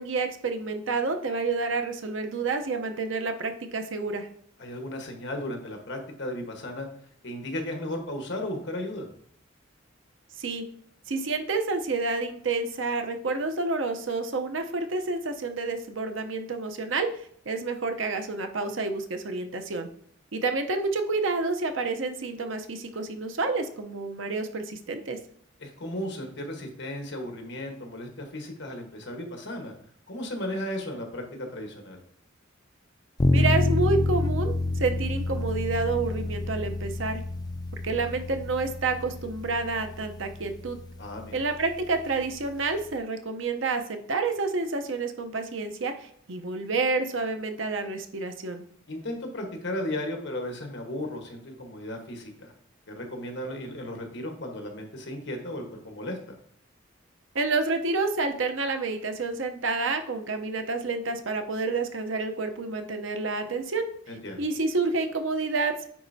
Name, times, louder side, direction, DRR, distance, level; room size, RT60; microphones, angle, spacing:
voice 1, 0.0-4.3 10.4-10.6 11.1-19.9 20.3-25.2 33.3-37.2 37.8-40.8 41.3-48.6 57.3-63.9 64.4-65.9, right 3 dB, 75° right, 6 dB, 0.8 m, -29 dB
voice 2, 4.6-6.9 7.2-9.1 25.6-29.7 30.1-32.0 41.0-41.3 48.9-52.5 52.9-56.2 64.1-64.4, left 1 dB, 60° left, 3 dB, 1.3 m, -35 dB
sound 1, 33.2-42.9, left 2 dB, 20° left, 0.4 m, -29 dB
9.3 x 4.2 x 2.7 m, 0.65 s
head